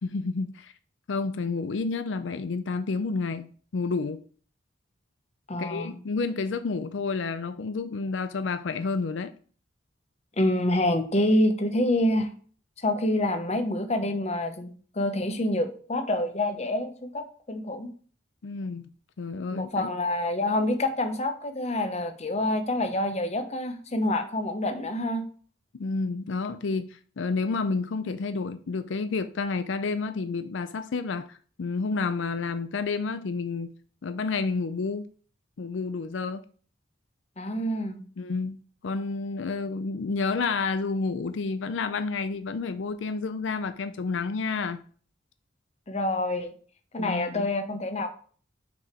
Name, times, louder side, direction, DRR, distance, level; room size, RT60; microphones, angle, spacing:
voice 1, 0.0-0.7 1.1-4.2 5.6-9.3 18.4-18.9 19.2-19.9 25.7-33.7 34.0-35.1 35.6-36.4 38.2-44.8 47.0-47.5, left 4 dB, 90° left, 0.5 m, -30 dB
voice 2, 5.5-6.0 10.4-12.3 12.8-14.7 15.0-17.9 19.5-25.2 37.4-38.0 45.9-46.5 46.9-48.1, left 1 dB, 35° left, 0.8 m, -27 dB
6.3 x 4.9 x 4.4 m
head